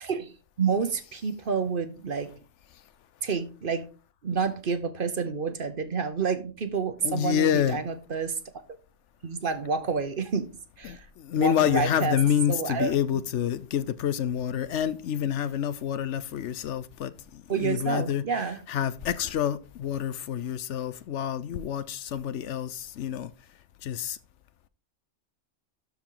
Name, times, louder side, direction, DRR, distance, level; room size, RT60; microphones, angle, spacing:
voice 1, 0.0-2.3 3.2-3.9 4.2-8.4 9.2-11.1 11.3-12.2 12.5-12.9 17.5-18.6, right 5 dB, 50° right, 1.0 m, -29 dB
voice 2, 7.0-7.8 10.8-18.3 18.7-23.3 23.8-24.2, left 9 dB, 75° left, 0.9 m, -28 dB
12.5 x 4.8 x 3.8 m
omnidirectional pair, 1.2 m